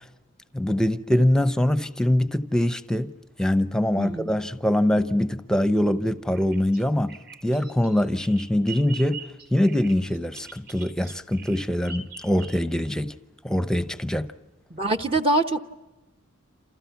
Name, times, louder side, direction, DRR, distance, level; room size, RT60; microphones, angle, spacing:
voice 1, 0.5-3.1 3.4-9.2 9.5-13.1 13.4-14.3, left 1 dB, 5° left, 0.8 m, -23 dB
voice 2, 3.9-4.3 14.7-15.6, right 2 dB, 25° right, 0.9 m, -24 dB
Bird vocalization bird call bird song, 6.3-12.9, right 5 dB, 55° right, 4.2 m, -43 dB
28.5 x 28.5 x 5.9 m
head